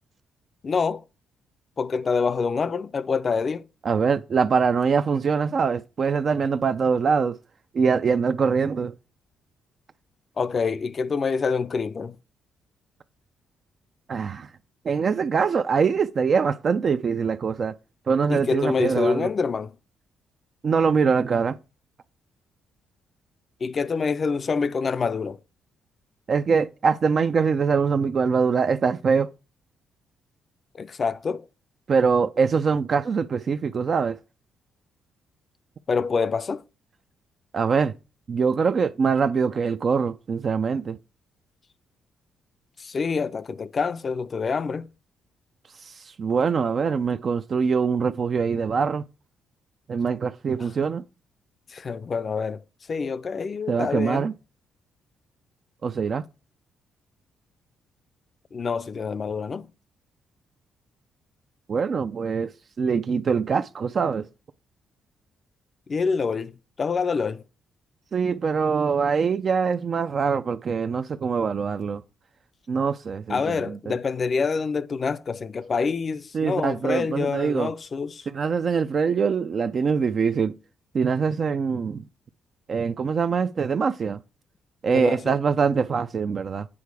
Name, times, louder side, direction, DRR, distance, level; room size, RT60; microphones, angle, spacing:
voice 1, 0.6-1.0 1.8-3.7 10.4-12.2 18.3-19.7 23.6-25.4 30.7-31.5 35.9-36.6 42.8-44.9 50.6-50.7 51.7-52.6 52.9-54.3 58.5-59.7 65.9-67.4 73.3-78.3 84.9-85.4, left 5 dB, 40° left, 0.4 m, -26 dB
voice 2, 3.9-7.4 7.7-8.9 14.1-14.5 14.8-17.7 18.1-19.3 20.6-21.5 26.3-29.3 31.9-34.2 37.5-37.9 38.3-41.0 45.8-49.0 49.9-51.0 53.7-54.3 55.8-56.2 61.7-62.5 62.8-64.3 68.1-72.0 72.7-73.9 76.3-77.7 78.3-80.5 80.9-82.0 82.7-84.2 84.8-86.7, right 5 dB, 45° right, 0.3 m, -23 dB
8.5 x 4.7 x 4.6 m
cardioid pair, 90°, 0 cm